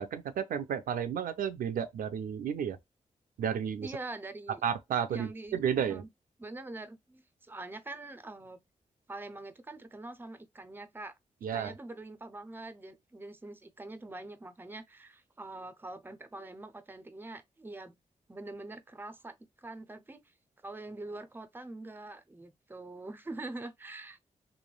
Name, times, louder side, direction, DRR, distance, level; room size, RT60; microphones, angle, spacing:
voice 1, 0.0-2.8 3.4-4.0 4.6-6.0 11.4-11.7, right 8 dB, 80° right, 0.4 m, -32 dB
voice 2, 3.8-4.6 5.1-6.1 6.4-8.6 9.1-11.2 11.5-17.9 18.3-20.2 20.6-24.2, right 2 dB, 15° right, 0.5 m, -44 dB
3.1 x 2.1 x 2.3 m
cardioid pair, 50°, 14 cm